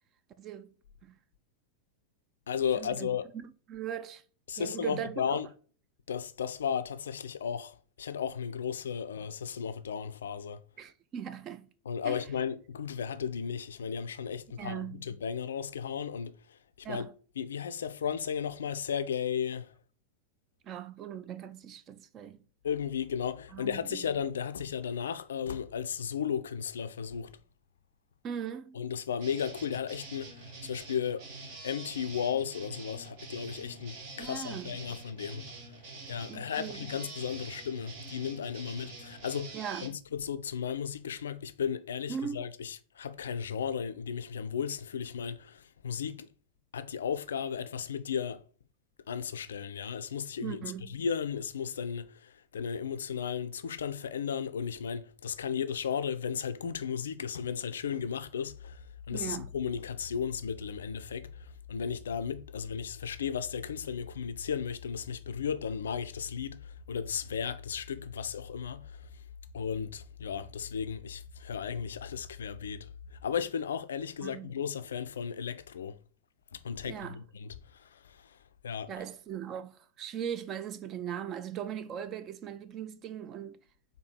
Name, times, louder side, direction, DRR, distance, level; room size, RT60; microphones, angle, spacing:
voice 1, 0.4-0.7 1.0-1.1 2.8-3.1 3.3-4.2 4.6-5.4 10.8-11.7 12.0-12.2 14.6-15.0 16.8-17.1 20.6-22.4 23.5-24.1 28.2-28.8 34.2-34.8 36.3-36.9 39.5-39.9 42.1-42.4 50.4-51.0 59.1-59.5 74.2-74.5 76.8-77.2 78.9-83.6, right 9 dB, 30° right, 0.4 m, -39 dB
voice 2, 2.5-3.2 4.5-5.5 6.1-10.6 11.9-16.3 16.9-17.1 17.4-19.7 22.6-27.3 28.7-31.2 31.6-35.4 36.1-39.6 39.8-46.3 46.7-48.4 49.1-50.6 50.9-61.3 61.7-68.9 69.5-76.0 76.5-78.2 78.6-78.9, left 7 dB, 65° left, 0.3 m, -35 dB
sound 1, 29.2-39.9, right 3 dB, 45° right, 1.2 m, -46 dB
sound 2, 58.5-73.3, left 6 dB, 15° right, 1.7 m, -49 dB
4.5 x 2.7 x 4.3 m
figure-of-eight pair, 90°, 0 cm